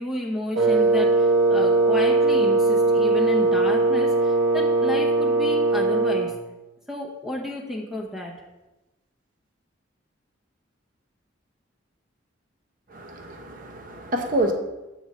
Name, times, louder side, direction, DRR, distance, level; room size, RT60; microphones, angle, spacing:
voice 1, 0.0-6.3 6.9-8.3, left 1 dB, ahead, -1 dB, 0.7 m, -32 dB
Wind instrument woodwind instrument, 0.5-6.3, right 2 dB, 90° right, 0.9 m, -20 dB
voice 2, 12.9-14.5, right 1 dB, 45° right, 3 dB, 0.9 m, -27 dB
7.8 x 4.9 x 4.1 m, 1.0 s
head